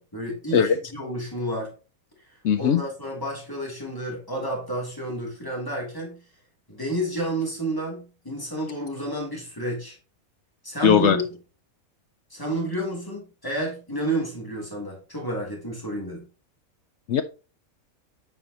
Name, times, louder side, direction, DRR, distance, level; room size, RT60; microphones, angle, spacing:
voice 1, 0.0-1.7 2.2-6.2 6.7-10.0 10.6-11.2 12.3-16.2, right 1 dB, 15° left, 2.7 m, -30 dB
voice 2, 2.4-2.8 10.8-11.2 17.1-17.2, left 8 dB, 65° left, 0.8 m, -18 dB
7.8 x 5.5 x 2.8 m
omnidirectional pair, 1.5 m